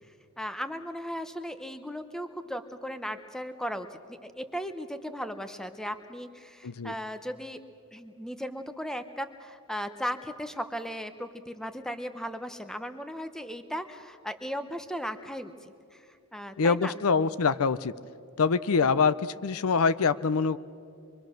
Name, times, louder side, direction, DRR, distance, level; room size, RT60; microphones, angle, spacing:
voice 1, 0.4-7.6 7.9-16.1 16.3-16.9, equal, ahead, 9 dB, 0.9 m, -37 dB
voice 2, 6.6-6.9 16.6-17.9 18.4-20.6, left 5 dB, 75° left, 16 dB, 0.6 m, -25 dB
25.5 x 23.5 x 6.4 m, 2.4 s
head